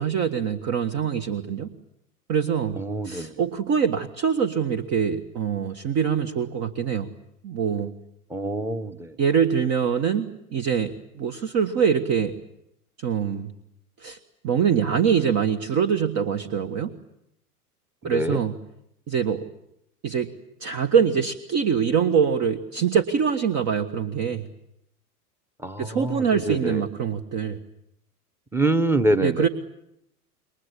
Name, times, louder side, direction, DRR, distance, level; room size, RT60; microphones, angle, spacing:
voice 1, 0.0-1.7 2.3-2.8 3.0-7.1 7.4-7.9 9.2-12.4 13.0-13.5 14.0-14.2 14.4-16.9 18.0-18.5 19.1-19.4 20.0-20.3 20.6-24.5 25.8-27.6 29.2-29.5, right 7 dB, 35° right, 8 dB, 1.5 m, -24 dB
voice 2, 2.8-3.4 8.3-9.2 18.0-18.4 25.6-26.9 28.5-29.5, right 1 dB, 5° right, 14 dB, 1.2 m, -25 dB
28.0 x 22.5 x 8.4 m, 0.79 s
hypercardioid pair, 95°, 46 cm